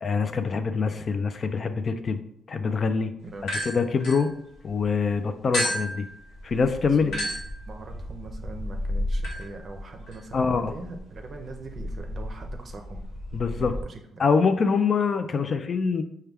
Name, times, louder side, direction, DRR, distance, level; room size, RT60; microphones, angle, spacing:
voice 1, 0.0-2.2 2.5-3.1 3.7-4.3 4.6-6.0 6.4-7.1 10.3-10.7 13.3-13.7 14.2-16.0, left 5 dB, 45° left, 9 dB, 0.3 m, -24 dB
sound 1, 3.4-4.9 5.5-13.8, left 1 dB, 70° left, 1.2 m, -33 dB
voice 2, 7.7-13.0 13.6-14.2, right 3 dB, 45° right, 4 dB, 0.6 m, -42 dB
4.5 x 2.2 x 3.4 m, 0.73 s
cardioid pair, 90°, 0 cm